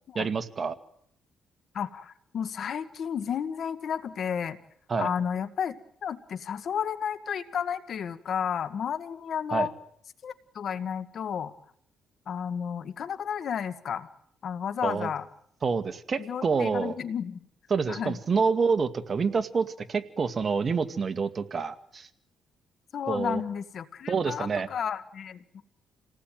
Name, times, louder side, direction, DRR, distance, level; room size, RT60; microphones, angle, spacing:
voice 1, 0.2-0.8 4.9-5.1 9.5-9.7 14.8-15.1 15.6-16.9 17.7-22.1 23.1-23.4 24.1-24.7, right 5 dB, 40° right, 9 dB, 2.0 m, -27 dB
voice 2, 1.7-4.6 5.0-5.8 6.0-9.7 10.2-11.5 12.3-14.1 14.4-15.2 16.2-17.4 17.9-18.2 22.9-25.6, left 8 dB, 60° left, 12 dB, 1.7 m, -32 dB
28.5 x 19.0 x 9.3 m, 0.69 s
cardioid pair, 90°, 0 cm